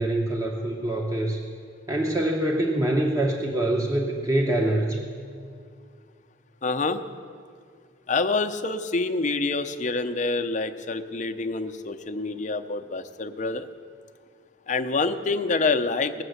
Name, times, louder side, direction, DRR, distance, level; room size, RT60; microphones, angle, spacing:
voice 1, 0.0-1.4 1.9-5.0, right 1 dB, 20° right, -1 dB, 0.9 m, -25 dB
voice 2, 6.6-7.0 8.1-13.7 14.7-16.2, left 3 dB, 40° left, 7 dB, 0.6 m, -26 dB
19.5 x 6.7 x 8.0 m, 2.2 s
head